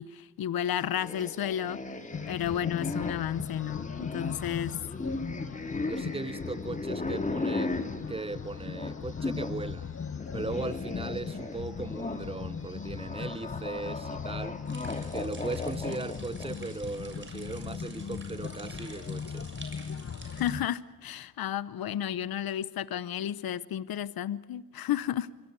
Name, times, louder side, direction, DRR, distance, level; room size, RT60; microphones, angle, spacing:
voice 1, 0.0-1.8 2.3-4.8 20.3-25.3, left 10 dB, 75° left, 0.9 m, -32 dB
sound 1, 0.9-9.6 9.9-16.7, left 2 dB, 20° left, 2.6 m, -37 dB
sound 2, 2.1-20.7, left 6 dB, 40° left, 1.0 m, -38 dB
voice 2, 5.8-7.8 8.1-9.9 10.3-14.6 15.1-19.5, right 3 dB, 15° right, 0.9 m, -38 dB
sound 3, 14.7-20.5, right 3 dB, 30° right, 6.6 m, -49 dB
26.5 x 23.0 x 8.8 m
cardioid pair, 80°, 37 cm